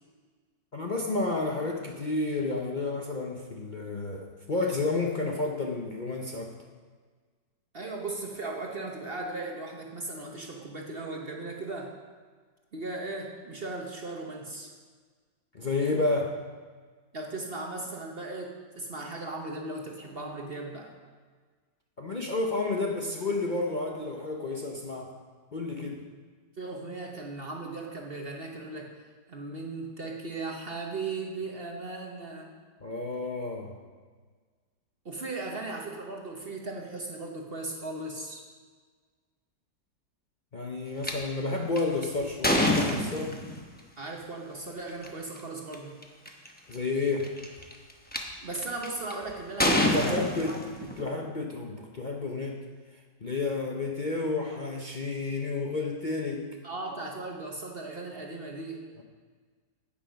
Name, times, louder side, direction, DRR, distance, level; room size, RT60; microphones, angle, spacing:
voice 1, 0.7-6.5 15.5-16.3 22.0-25.1 25.5-26.0 32.8-33.8 40.5-43.3 46.7-47.3 49.9-50.6 51.0-52.6 53.2-56.5, left 3 dB, 50° left, 0 dB, 0.5 m, -31 dB
voice 2, 7.7-11.9 12.7-14.7 17.1-20.9 26.6-28.9 29.3-32.5 35.0-38.4 44.0-46.0 48.4-50.7 56.6-58.8, right 2 dB, 45° right, 1 dB, 0.8 m, -37 dB
sound 1, 41.0-41.1 41.8-43.6 44.9-45.1 45.7-45.8 46.0-46.5 47.2-48.2 48.8-49.1 49.6-51.0, left 1 dB, 10° left, 0.6 m, -26 dB
10.0 x 8.9 x 5.2 m, 1.5 s
omnidirectional pair, 2.0 m